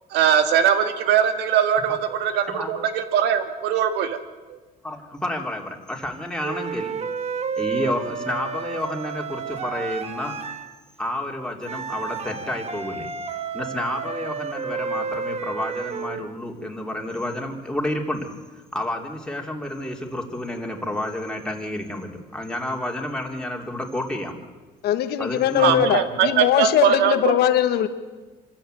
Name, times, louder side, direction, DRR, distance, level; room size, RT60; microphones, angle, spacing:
voice 1, 0.1-4.2 25.6-27.4, right 8 dB, 85° right, 9 dB, 2.0 m, -21 dB
voice 2, 4.8-7.0 7.6-10.3 11.0-13.1 13.5-18.3 18.7-24.4 25.2-26.0, left 1 dB, 5° left, 1 dB, 3.2 m, -30 dB
sound 1, 6.4-10.7 11.6-16.3, right 6 dB, 40° right, 1.5 m, -31 dB
voice 3, 24.8-27.9, left 11 dB, 70° left, 10 dB, 1.5 m, -21 dB
25.5 x 13.5 x 9.2 m, 1.3 s
cardioid pair, 110°, 17 cm